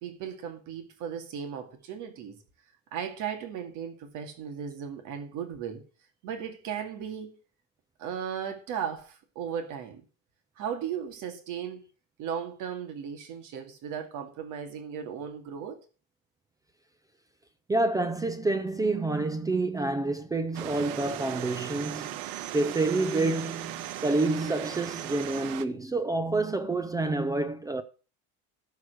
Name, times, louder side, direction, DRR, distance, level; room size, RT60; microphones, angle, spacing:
voice 1, 0.0-2.4 2.9-5.8 6.2-7.3 8.0-10.0 10.6-11.8 12.2-15.8, right 8 dB, 55° right, 2.3 m, -36 dB
voice 2, 17.7-22.2 22.5-27.8, right 2 dB, 10° right, 0.4 m, -28 dB
sound 1, 20.5-25.7, right 14 dB, 70° right, 0.9 m, -37 dB
13.0 x 4.7 x 6.2 m
cardioid pair, 145°, 38 cm